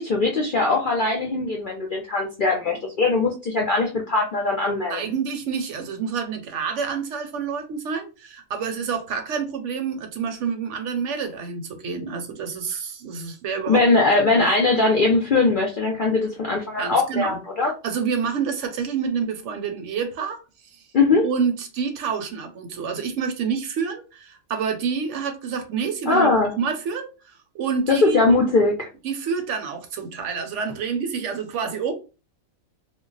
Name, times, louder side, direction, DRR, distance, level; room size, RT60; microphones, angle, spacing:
voice 1, 0.0-5.0 13.7-17.7 20.9-21.3 26.1-26.6 27.9-28.9, left 3 dB, 60° left, 0.5 m, -20 dB
voice 2, 4.9-13.8 14.4-14.5 16.8-17.4 17.8-20.4 20.7-20.8 21.2-27.1 27.5-28.3 29.0-31.9, right 6 dB, 65° right, 0.9 m, -28 dB
2.2 x 2.1 x 3.8 m
omnidirectional pair, 1.4 m